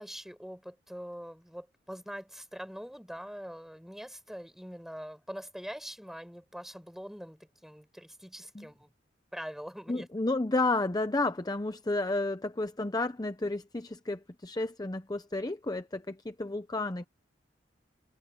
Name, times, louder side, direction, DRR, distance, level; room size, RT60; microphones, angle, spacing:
voice 1, 0.0-8.9 9.3-10.1, equal, ahead, 6.7 m, -43 dB
voice 2, 9.9-17.1, left 2 dB, 20° left, 0.7 m, -31 dB
head